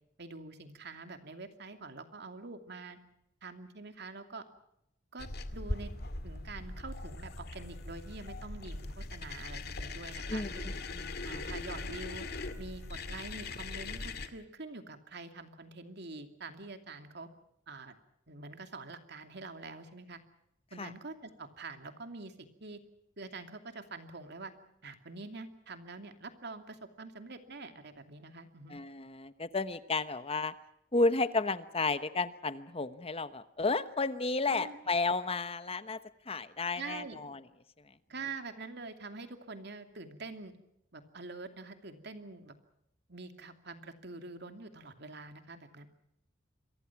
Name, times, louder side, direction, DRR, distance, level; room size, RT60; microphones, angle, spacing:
voice 1, 0.2-3.0 3.4-4.5 5.1-5.9 6.2-10.7 11.2-12.3 12.6-17.3 17.7-18.0 18.3-20.2 20.7-22.8 23.2-24.5 24.8-28.8 34.5-34.8 36.7-37.2 38.1-40.5 40.9-42.5 43.1-45.9, right 3 dB, 60° right, 7 dB, 2.6 m, -45 dB
sound 1, 5.2-14.3, left 2 dB, 60° left, 2.2 m, -40 dB
voice 2, 10.3-11.1 20.8-20.9 28.7-30.5 30.9-36.0 36.3-37.4, left 3 dB, 30° left, 12 dB, 1.1 m, -32 dB
28.0 x 23.5 x 6.0 m, 0.78 s
head